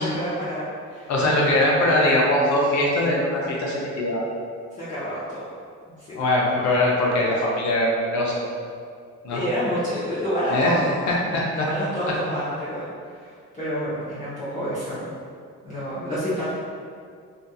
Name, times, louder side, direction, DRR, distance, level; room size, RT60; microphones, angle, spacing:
voice 1, 0.0-1.1 4.8-5.4 5.9-6.1 9.3-11.2 11.5-15.1 15.6-16.5, equal, 25° left, -13 dB, 0.8 m, -28 dB
voice 2, 1.1-4.2 6.1-8.4 9.2-9.4 10.5-10.8 11.3-11.6, left 1 dB, 70° left, -3 dB, 0.7 m, -21 dB
2.6 x 2.5 x 2.3 m, 2.2 s
cardioid pair, 90°, 30 cm